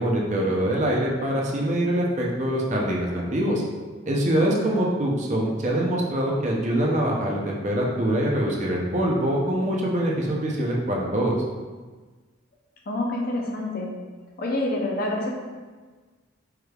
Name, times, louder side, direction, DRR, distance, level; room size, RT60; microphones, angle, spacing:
voice 1, 0.0-3.6 4.1-11.4, right 1 dB, 40° right, -2 dB, 0.6 m, -24 dB
voice 2, 12.9-13.9 14.4-15.3, left 1 dB, 50° left, -1 dB, 0.6 m, -27 dB
4.7 x 3.2 x 2.3 m, 1.4 s
head